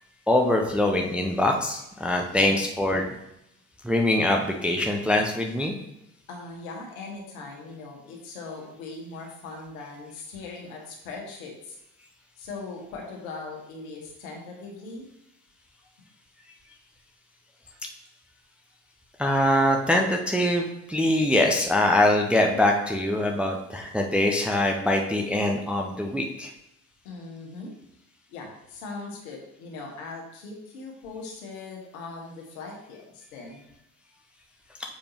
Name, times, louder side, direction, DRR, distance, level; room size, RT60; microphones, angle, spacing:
voice 1, 0.3-3.2 3.8-5.7 19.2-26.5, left 1 dB, 5° right, 1 dB, 0.5 m, -23 dB
voice 2, 2.3-2.6 6.3-11.8 12.4-15.1 27.0-27.7 28.3-33.7, left 3 dB, 65° left, 0 dB, 1.5 m, -40 dB
6.9 x 5.1 x 2.9 m, 0.84 s
figure-of-eight pair, 55°, 45 cm